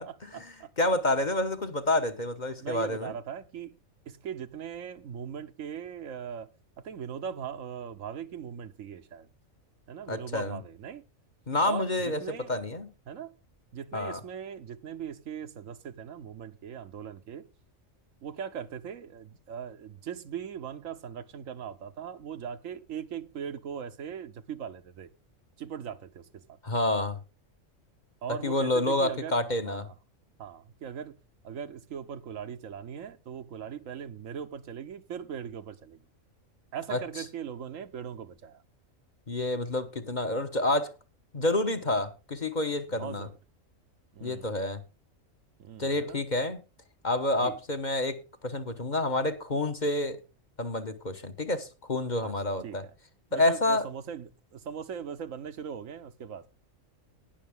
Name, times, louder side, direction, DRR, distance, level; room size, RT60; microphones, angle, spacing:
voice 1, 0.0-3.1 10.1-10.6 11.5-12.9 13.9-14.2 26.6-27.2 28.3-29.9 36.9-37.2 39.3-40.9 41.3-43.3 44.2-44.8 45.8-46.6 47.0-50.2 50.6-52.8 53.3-53.8, left 2 dB, 35° left, 1.2 m, -29 dB
voice 2, 2.6-3.8 4.1-6.5 6.8-9.3 9.9-11.0 11.6-12.5 13.1-13.3 13.7-17.5 18.2-25.1 25.6-26.4 28.2-29.4 29.7-29.9 30.4-31.1 31.4-36.0 36.7-38.6 43.0-43.3 44.1-44.5 45.6-46.2 47.4-47.6 52.2-52.3 52.6-52.8 53.3-56.5, right 8 dB, 75° right, 1.2 m, -39 dB
19.0 x 6.5 x 3.6 m
omnidirectional pair, 1.4 m